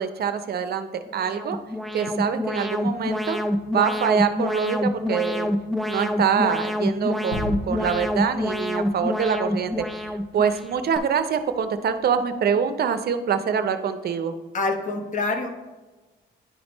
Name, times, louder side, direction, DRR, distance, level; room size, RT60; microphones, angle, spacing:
voice 1, 0.0-1.6 1.9-3.4 3.7-5.5 5.9-14.3, right 7 dB, 50° right, 10 dB, 0.5 m, -25 dB
Alarm, 1.1-11.0, left 1 dB, ahead, 0.4 m, -27 dB
Gunshot gunfire / Fireworks / Boom, 7.3-12.1, left 1 dB, 80° left, 1.3 m, -38 dB
voice 2, 14.5-15.5, left 3 dB, 40° left, 5 dB, 0.9 m, -26 dB
9.8 x 3.4 x 3.9 m, 1.2 s
cardioid pair, 90°, 20 cm